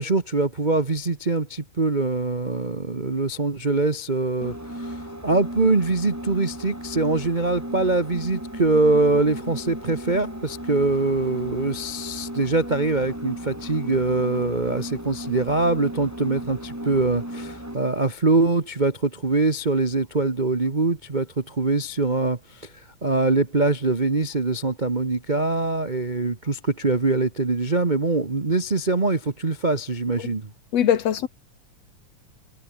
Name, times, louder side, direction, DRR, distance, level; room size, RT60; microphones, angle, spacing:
voice 1, 0.0-22.7 23.0-30.5, right 3 dB, 45° right, 0.5 m, -23 dB
sound 1, 4.4-17.9, equal, 5° right, 5.3 m, -35 dB
voice 2, 30.7-31.3, left 9 dB, 60° left, 2.5 m, -21 dB
omnidirectional pair, 3.4 m